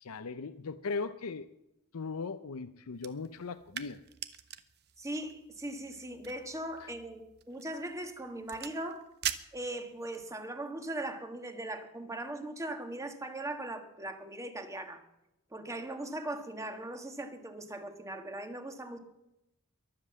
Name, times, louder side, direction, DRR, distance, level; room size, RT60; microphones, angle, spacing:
voice 1, 0.0-1.5 1.9-4.0 6.8-6.9, left 4 dB, 80° left, 11 dB, 0.6 m, -38 dB
sound 1, 2.9-10.3, right 10 dB, 50° right, 0.9 m, -44 dB
voice 2, 5.0-9.1 9.5-15.0 15.5-19.0, right 1 dB, 15° right, 6 dB, 1.6 m, -39 dB
22.5 x 7.8 x 7.4 m, 0.89 s
head